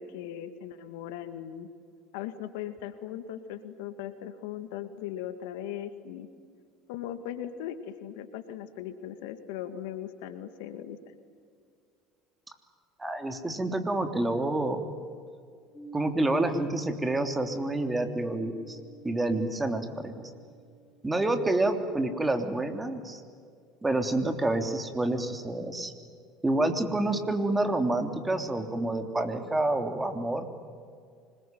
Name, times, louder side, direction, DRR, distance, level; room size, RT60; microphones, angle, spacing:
voice 1, 0.0-1.7 2.1-6.3 6.9-11.0, left 10 dB, 75° left, 10 dB, 1.9 m, -38 dB
voice 2, 13.0-14.8 15.9-18.8 19.0-20.3 21.0-23.2 23.8-25.9 26.4-30.5, right 2 dB, 15° right, 7 dB, 3.2 m, -28 dB
sound 1, 15.7-21.3, right 3 dB, 15° left, 7.7 m, -46 dB
25.5 x 22.0 x 9.3 m, 2.3 s
hypercardioid pair, 75°, 0 cm